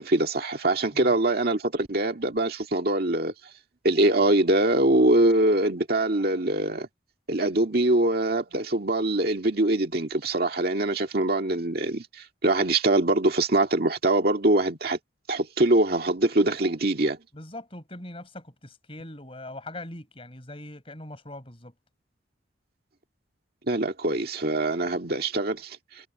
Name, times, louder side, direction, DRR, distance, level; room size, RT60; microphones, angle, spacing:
voice 1, 0.0-3.3 3.8-6.9 7.3-15.0 15.3-17.2 23.7-25.8, right 2 dB, 55° right, 2.0 m, -23 dB
voice 2, 17.3-21.7, left 1 dB, 30° left, 4.8 m, -41 dB
head